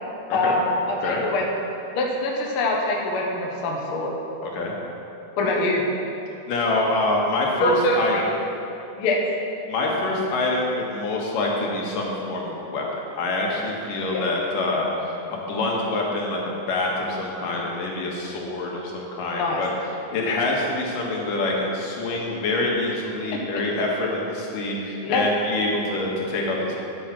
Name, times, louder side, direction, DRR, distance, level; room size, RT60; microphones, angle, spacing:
voice 1, 0.3-1.4 1.9-4.1 5.4-5.8 7.6-8.0 9.0-9.2 14.1-14.2 19.3-19.6 25.0-25.3, left 2 dB, 55° left, -1 dB, 1.6 m, -24 dB
voice 2, 6.5-8.3 9.7-12.9 13.2-19.7 20.1-26.8, left 2 dB, 80° left, -2 dB, 3.1 m, -26 dB
9.8 x 8.8 x 5.8 m, 2.8 s
omnidirectional pair, 3.8 m